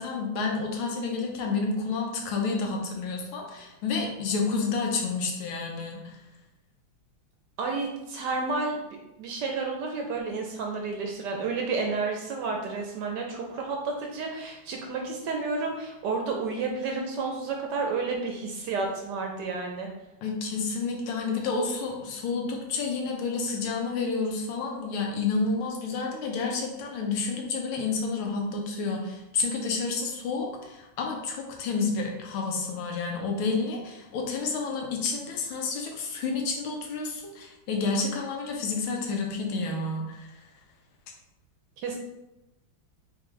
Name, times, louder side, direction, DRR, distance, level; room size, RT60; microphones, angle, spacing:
voice 1, 0.0-6.2 20.2-40.3, left 4 dB, 85° left, 1 dB, 1.7 m, -30 dB
voice 2, 7.6-8.8 9.2-19.9 41.8-42.0, right 4 dB, 70° right, 1 dB, 1.0 m, -31 dB
4.3 x 3.6 x 3.1 m, 0.94 s
omnidirectional pair, 2.2 m